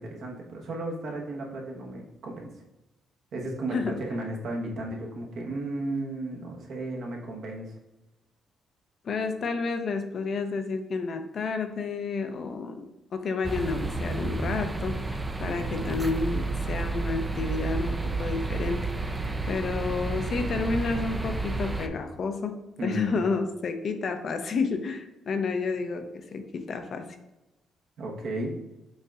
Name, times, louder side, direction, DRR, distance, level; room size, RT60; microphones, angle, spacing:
voice 1, 0.0-2.5 3.3-7.8 15.6-15.9 22.8-23.2 28.0-28.5, right 1 dB, 70° right, 0 dB, 1.0 m, -34 dB
voice 2, 9.0-12.9 13.1-18.9 19.5-27.1, left 4 dB, 55° left, 7 dB, 0.5 m, -30 dB
sound 1, 13.4-21.9, right 3 dB, 15° right, 0.3 m, -31 dB
5.4 x 3.9 x 2.4 m, 0.98 s
cardioid pair, 90°, 0 cm